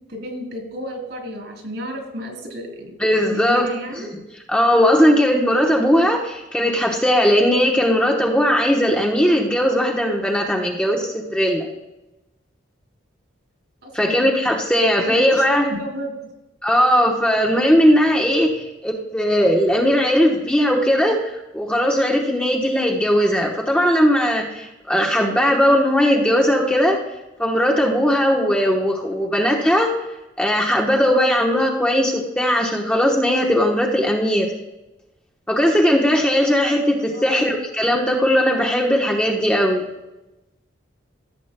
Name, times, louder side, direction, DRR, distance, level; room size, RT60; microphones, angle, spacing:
voice 1, 0.1-2.9 3.3-4.1 13.8-14.3 15.0-16.2 37.1-37.5, right 1 dB, 65° right, 2 dB, 3.1 m, -32 dB
voice 2, 3.0-3.7 3.9-4.0 4.5-11.7 13.9-15.7 16.6-27.0 27.4-29.9 30.4-34.5 35.5-39.9, equal, 5° left, -1 dB, 1.0 m, -18 dB
16.0 x 8.1 x 2.2 m, 0.98 s
head